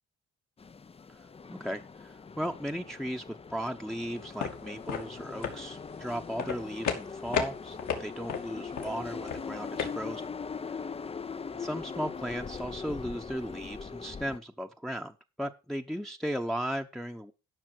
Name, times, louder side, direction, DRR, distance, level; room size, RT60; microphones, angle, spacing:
sound 1, 0.6-14.4, left 5 dB, 20° left, 0.5 m, -41 dB
voice 1, 1.1-10.3 11.5-17.3, equal, ahead, 3 dB, 0.9 m, -36 dB
sound 2, 4.2-9.9, left 7 dB, 75° left, 2.7 m, -36 dB
12.5 x 5.9 x 6.2 m, 0.31 s
cardioid pair, 90°, 30 cm